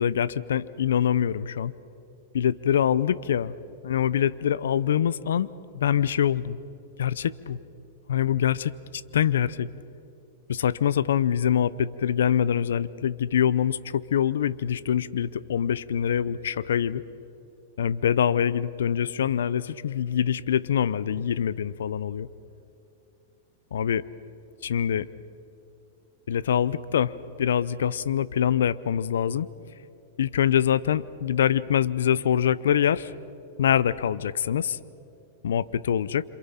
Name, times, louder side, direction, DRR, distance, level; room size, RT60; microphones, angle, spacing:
voice 1, 0.0-1.7 2.3-3.5 3.8-5.5 5.7-6.6 7.0-7.6 8.1-8.7 9.1-9.7 10.5-17.0 17.8-22.3 23.7-24.0 24.6-25.1 26.3-27.1 27.4-29.5 30.2-33.1 33.6-34.8 35.4-36.2, left 9 dB, 85° left, 19 dB, 0.7 m, -24 dB
27.5 x 27.0 x 5.7 m, 2.7 s
hypercardioid pair, 125°, 0 cm